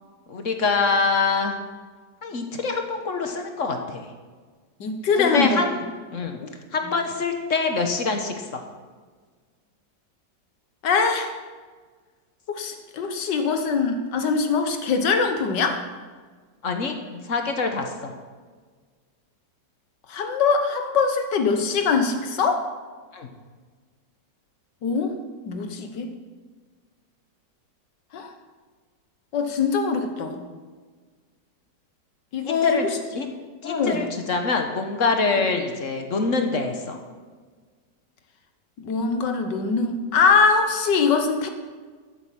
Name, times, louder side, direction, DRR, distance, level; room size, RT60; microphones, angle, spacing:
voice 1, 0.3-1.6 2.2-4.1 5.2-5.8 6.1-6.4 6.7-8.6 16.6-18.2 23.1-23.3 32.4-32.9 33.1-33.3 33.6-37.0, left 4 dB, 50° left, 5 dB, 1.4 m, -25 dB
voice 2, 4.8-5.6 6.2-6.5 10.8-11.3 12.5-15.8 20.1-22.7 24.8-25.1 25.5-26.1 28.1-28.3 29.3-30.5 32.3-33.0 33.6-34.1 38.8-41.5, left 5 dB, 80° left, 6 dB, 1.8 m, -22 dB
13.0 x 8.0 x 5.8 m, 1.5 s
omnidirectional pair, 1.9 m